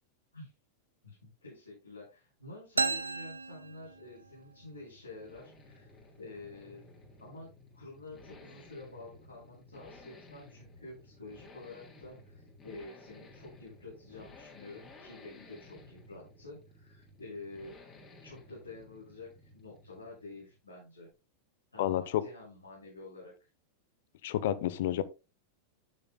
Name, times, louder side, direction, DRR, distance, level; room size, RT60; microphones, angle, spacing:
voice 1, 1.0-5.9 6.2-6.8 7.2-17.8 18.2-21.1 21.7-23.3, left 2 dB, 80° left, 6.5 m, -49 dB
sound 1, 2.6-20.7, left 2 dB, 25° left, 3.4 m, -56 dB
sound 2, 2.8-4.5, right 4 dB, 80° right, 0.5 m, -34 dB
voice 2, 21.8-22.2 24.2-25.0, left 12 dB, 55° left, 0.9 m, -30 dB
12.5 x 10.0 x 2.3 m
figure-of-eight pair, 90°, 0 cm